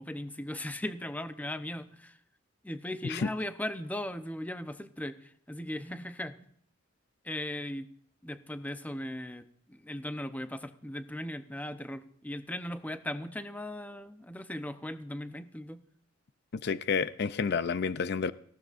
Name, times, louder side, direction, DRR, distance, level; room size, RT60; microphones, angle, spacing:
voice 1, 0.0-2.2 2.6-6.5 7.2-7.9 8.2-15.8, left 1 dB, 10° left, 0.7 m, -38 dB
voice 2, 16.5-18.3, left 5 dB, 55° left, 0.5 m, -30 dB
18.5 x 16.0 x 2.5 m
head